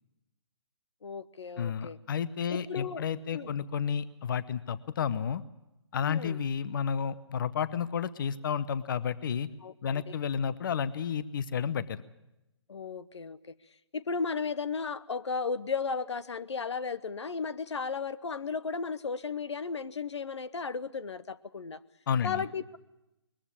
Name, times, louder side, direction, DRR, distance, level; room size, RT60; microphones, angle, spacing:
voice 1, 1.0-2.0 2.5-3.0 3.3-3.5 6.0-6.4 9.6-10.1 12.7-13.5 13.9-21.8 22.2-22.8, left 5 dB, 75° left, 16 dB, 0.9 m, -35 dB
voice 2, 1.6-5.4 5.9-9.5 9.8-12.0 22.1-22.4, left 7 dB, 45° left, 17 dB, 0.8 m, -31 dB
21.5 x 14.5 x 9.9 m, 0.93 s
hypercardioid pair, 145°, 15 cm